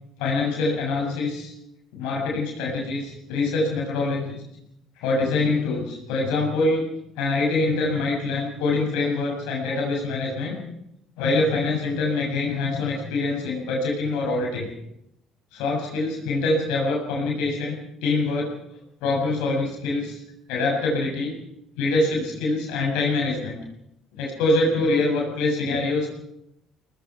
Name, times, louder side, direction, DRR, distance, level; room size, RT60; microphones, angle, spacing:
voice 1, 0.2-1.5 1.9-4.4 5.0-6.9 7.2-10.6 11.2-14.7 15.5-18.5 19.0-20.2 20.5-21.3 21.8-23.6 24.2-26.1, left 3 dB, 70° left, -1 dB, 7.0 m, -24 dB
23.5 x 19.5 x 6.0 m, 0.80 s
hypercardioid pair, 55°, 0 cm